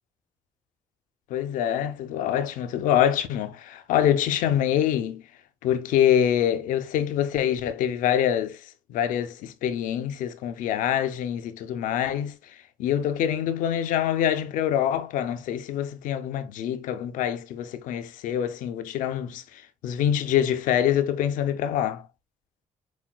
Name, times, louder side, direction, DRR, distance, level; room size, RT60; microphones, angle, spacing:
voice 1, 1.3-5.2 5.6-8.6 8.9-12.4 12.8-19.4 19.8-22.0, left 10 dB, 85° left, 0.4 m, -25 dB
5.9 x 2.2 x 2.3 m
cardioid pair, 70°, 13 cm